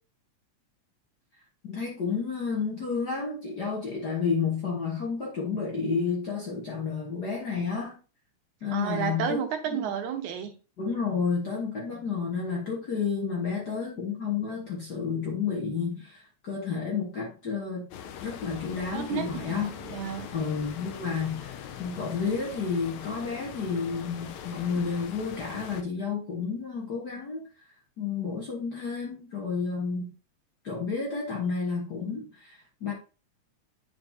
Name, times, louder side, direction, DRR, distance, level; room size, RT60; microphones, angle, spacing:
voice 1, 1.6-8.0 8.6-9.9 10.8-17.9 18.2-19.7 20.3-27.4 28.0-30.1 30.6-32.9, left 5 dB, 45° left, 1.4 m, -31 dB
voice 2, 8.7-10.6 18.9-20.3, right 8 dB, 80° right, 2.4 m, -32 dB
sound 1, 17.9-25.8, left 8 dB, 80° left, 1.9 m, -42 dB
9.3 x 4.7 x 2.7 m
omnidirectional pair, 3.4 m